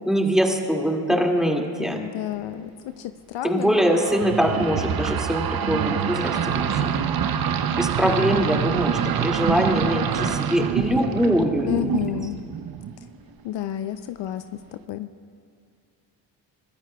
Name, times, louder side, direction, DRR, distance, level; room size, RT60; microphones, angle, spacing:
voice 1, 0.1-2.0 3.4-6.9 7.7-11.9, equal, ahead, 0 dB, 2.2 m, -23 dB
voice 2, 1.8-4.0 11.7-12.4 13.4-15.1, left 12 dB, 65° left, 11 dB, 0.6 m, -31 dB
sound 1, 3.7-13.0, right 8 dB, 50° right, 0.8 m, -26 dB
22.5 x 15.0 x 2.3 m, 2.3 s
supercardioid pair, 55°, 47 cm